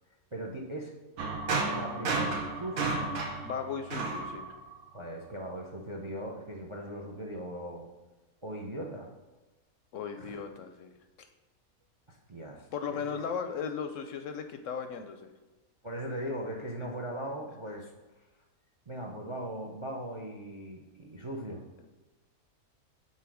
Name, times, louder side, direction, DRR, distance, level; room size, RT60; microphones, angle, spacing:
voice 1, 0.3-0.9 1.2-3.0 4.9-7.9 8.4-9.1 10.2-10.4 12.1-13.2 15.8-17.9 18.9-21.6, right 1 dB, 35° right, 1 dB, 0.5 m, -39 dB
sound 1, 1.2-5.0, right 3 dB, 75° right, 1.3 m, -32 dB
voice 2, 3.4-4.5 9.9-10.9 11.2-11.3 12.7-15.3 16.8-16.9, left 6 dB, 70° left, 7 dB, 0.8 m, -36 dB
5.7 x 3.8 x 6.0 m, 1.2 s
omnidirectional pair, 1.5 m